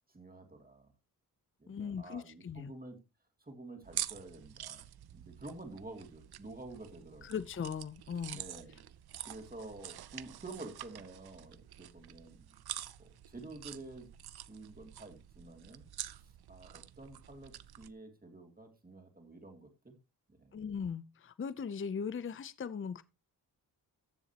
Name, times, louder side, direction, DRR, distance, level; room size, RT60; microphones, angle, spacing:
voice 1, 0.1-0.9 1.6-3.0 3.4-4.9 5.1-7.3 8.3-8.8 9.3-12.5 13.0-14.1 14.5-15.9 16.2-20.0 20.3-20.6, right 2 dB, 25° right, 2.6 m, -49 dB
voice 2, 1.7-2.7 7.2-8.4 20.5-23.0, left 6 dB, 35° left, 0.6 m, -39 dB
sound 1, 3.8-17.9, right 11 dB, 75° right, 0.6 m, -47 dB
15.0 x 7.1 x 2.9 m
wide cardioid pair, 90°, 38 cm